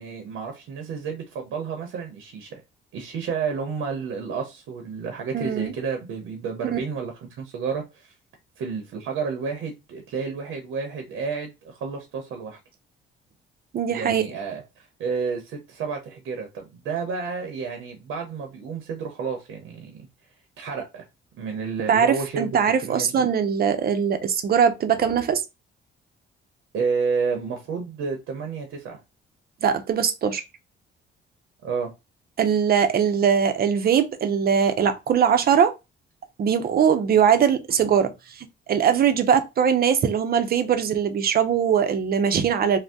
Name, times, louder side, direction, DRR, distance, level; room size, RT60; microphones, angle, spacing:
voice 1, 0.0-2.6 2.9-8.1 8.6-12.6 13.9-20.0 20.6-21.0 21.4-23.2 26.7-29.0 31.6-31.9, right 5 dB, 85° right, 0.7 m, -31 dB
voice 2, 5.3-5.7 6.7-6.8 13.7-14.3 21.9-25.4 29.6-30.4 32.4-35.7 36.4-42.8, right 7 dB, 50° right, 0.6 m, -21 dB
2.6 x 2.1 x 3.4 m
cardioid pair, 90°, 20 cm